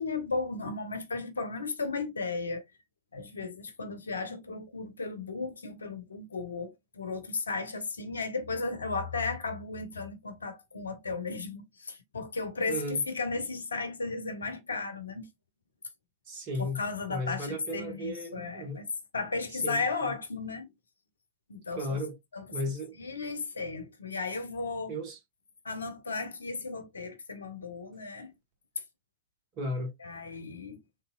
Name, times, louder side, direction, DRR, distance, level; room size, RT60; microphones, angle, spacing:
voice 1, 0.0-2.6 3.1-15.3 16.6-18.9 19.1-20.7 21.5-22.0 22.3-22.4 23.0-25.0 25.6-28.3 30.0-30.8, left 4 dB, 75° left, 0.5 m, -35 dB
voice 2, 12.7-13.0 16.3-16.8 17.1-18.8 19.6-20.1 21.7-22.2 22.5-23.0 24.9-25.2 29.6-29.9, left 1 dB, 40° right, 1.4 m, -35 dB
3.2 x 2.8 x 2.2 m
figure-of-eight pair, 90°, 0 cm